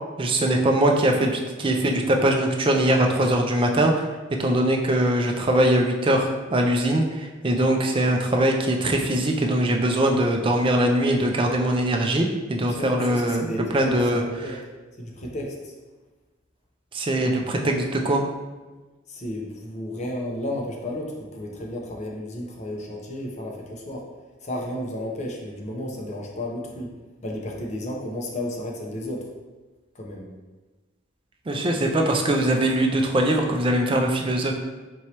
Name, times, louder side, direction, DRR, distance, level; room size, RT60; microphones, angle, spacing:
voice 1, 0.2-4.1 4.4-14.6 16.9-18.2 31.5-34.5, right 1 dB, 25° right, 2 dB, 0.4 m, -22 dB
voice 2, 12.7-13.8 14.1-14.5 15.0-15.7 19.1-24.1 24.4-26.9 27.2-29.3 29.9-30.3, left 1 dB, 35° left, -1 dB, 0.7 m, -33 dB
4.4 x 3.0 x 2.8 m, 1.3 s
head